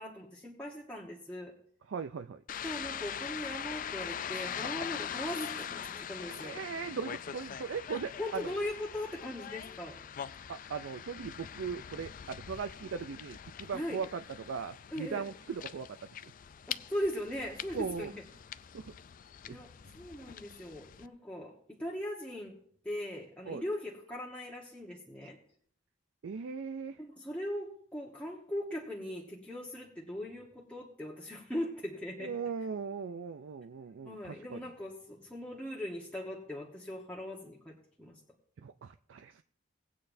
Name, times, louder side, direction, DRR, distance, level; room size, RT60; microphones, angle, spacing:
voice 1, 0.0-1.5 2.6-6.6 7.9-10.0 13.7-14.0 14.9-15.2 16.7-18.2 19.4-22.6 22.8-25.4 27.0-32.3 34.0-38.2, left 1 dB, 5° left, -4 dB, 1.2 m, -39 dB
voice 2, 1.9-2.4 6.4-8.4 10.5-15.9 17.7-18.1 18.7-18.9 19.5-19.6 23.5-23.6 26.2-27.0 32.2-34.6 38.6-39.4, right 6 dB, 75° right, 9 dB, 0.4 m, -39 dB
sound 1, 2.5-21.1, left 8 dB, 45° left, 0.4 m, -43 dB
18.5 x 8.6 x 2.6 m, 0.62 s
head